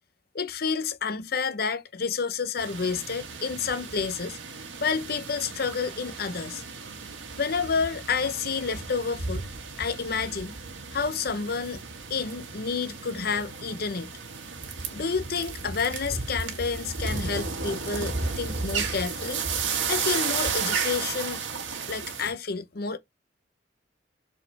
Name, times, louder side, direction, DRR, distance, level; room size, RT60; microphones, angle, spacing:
voice 1, 0.3-4.4 4.8-6.6 7.4-9.4 9.8-10.6 10.9-11.8 12.1-14.1 14.9-19.4 19.9-21.4 21.9-23.0, left 5 dB, 55° left, 0.8 m, -29 dB
sound 1, 2.6-22.3, right 5 dB, 80° right, 1.7 m, -33 dB
7.2 x 4.3 x 4.7 m
head